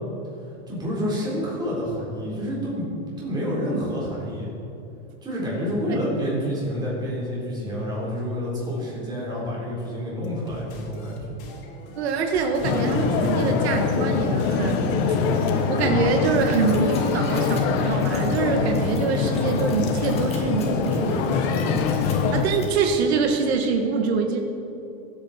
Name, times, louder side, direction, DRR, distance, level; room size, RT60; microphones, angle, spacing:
voice 1, 0.7-2.9 3.2-4.5 5.2-11.2, equal, 15° right, -5 dB, 3.8 m, -28 dB
sound 1, 10.2-23.2, left 1 dB, 55° left, 3.0 m, -44 dB
voice 2, 12.0-15.0 15.3-22.0 22.3-24.4, right 5 dB, 75° right, 3 dB, 1.6 m, -25 dB
sound 2, 12.6-22.4, left 5 dB, 35° left, 1.1 m, -23 dB
sound 3, 16.3-22.6, left 4 dB, 20° left, 1.9 m, -45 dB
24.0 x 8.7 x 4.3 m, 2.8 s
supercardioid pair, 165°, 32 cm